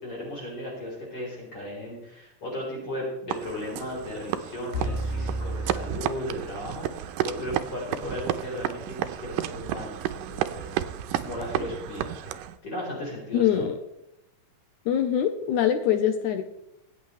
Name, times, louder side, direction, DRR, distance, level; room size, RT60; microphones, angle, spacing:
voice 1, 0.0-10.8 11.1-12.2 12.6-13.7, left 1 dB, 40° left, -4 dB, 5.1 m, -36 dB
sound 1, 3.3-12.6, right 12 dB, 80° right, 2.1 m, -32 dB
sound 2, 4.7-6.9, right 1 dB, 60° left, 3.1 m, -32 dB
voice 2, 13.3-13.8 14.9-16.4, left 9 dB, 75° left, 7 dB, 1.9 m, -23 dB
25.0 x 8.4 x 3.2 m, 0.84 s
omnidirectional pair, 4.2 m